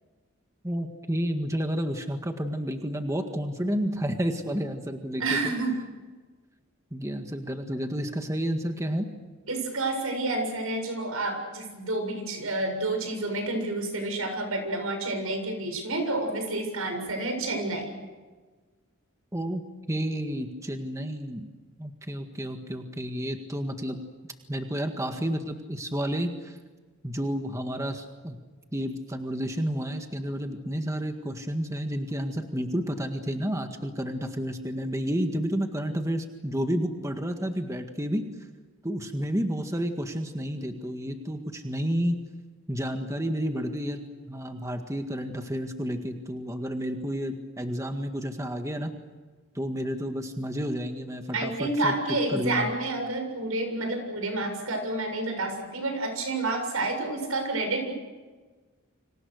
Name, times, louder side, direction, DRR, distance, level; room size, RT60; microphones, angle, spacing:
voice 1, 0.6-5.5 6.9-9.1 19.3-19.6 19.9-21.5 21.8-24.0 24.5-26.6 27.0-28.4 28.7-38.3 38.8-42.2 42.7-44.0 44.3-48.9 49.6-52.0 52.3-52.7, equal, 15° right, 5 dB, 1.8 m, -30 dB
voice 2, 5.2-5.8 9.5-17.9 51.3-57.9, right 2 dB, 90° right, 5 dB, 7.2 m, -29 dB
29.5 x 26.5 x 6.5 m, 1.3 s
head